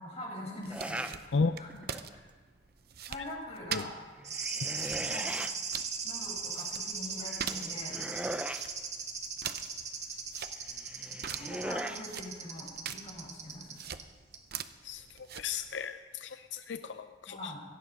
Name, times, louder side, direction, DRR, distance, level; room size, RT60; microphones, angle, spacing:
voice 1, 0.0-2.2 3.1-3.9 5.1-5.4 6.0-8.0 11.4-13.8 17.3-17.6, left 1 dB, 40° left, -3 dB, 5.1 m, -44 dB
sound 1, 0.6-15.8, right 8 dB, 60° right, 0.7 m, -45 dB
sound 2, 0.7-1.2 1.7-2.1 4.2-5.5 7.2-8.7 10.7-12.0, right 1 dB, 5° right, 0.6 m, -39 dB
sound 3, 4.2-14.0 14.3-14.4, right 5 dB, 40° right, 1.7 m, -38 dB
voice 2, 14.8-17.5, left 4 dB, 90° left, 9 dB, 0.5 m, -34 dB
17.5 x 13.0 x 5.4 m, 1.4 s
head